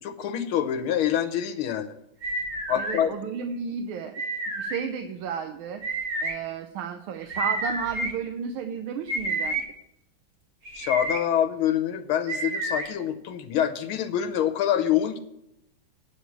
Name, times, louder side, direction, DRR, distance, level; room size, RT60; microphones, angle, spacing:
voice 1, 0.0-1.9 2.7-3.1 10.8-15.2, left 10 dB, 90° left, 8 dB, 1.7 m, -26 dB
sound 1, 2.2-3.0 4.1-4.8 5.8-6.3 7.3-8.1 9.1-9.6 10.7-11.2 12.3-12.9, right 2 dB, 45° right, 2.0 m, -29 dB
voice 2, 2.7-4.2 4.6-5.8 6.2-9.6, right 6 dB, 85° right, 6 dB, 1.6 m, -33 dB
9.2 x 6.5 x 7.1 m, 0.82 s
omnidirectional pair, 2.3 m